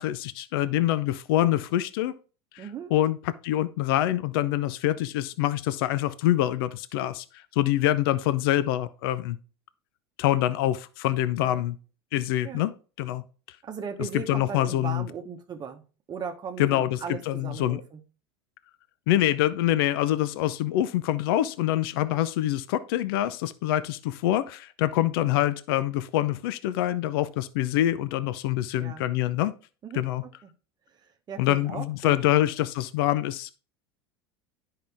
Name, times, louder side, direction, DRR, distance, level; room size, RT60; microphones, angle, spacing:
voice 1, 0.0-2.1 2.5-9.4 10.2-11.8 12.1-13.2 14.1-15.1 16.6-17.8 19.1-29.5 29.9-30.2 31.4-33.5, left 13 dB, 70° left, 15 dB, 0.6 m, -25 dB
voice 2, 2.6-2.9 11.4-11.6 12.4-12.7 13.6-18.0 28.8-29.1 29.8-30.5 31.3-32.1, right 6 dB, 30° right, 5 dB, 1.1 m, -38 dB
10.5 x 5.7 x 3.5 m, 0.35 s
hypercardioid pair, 90°, 13 cm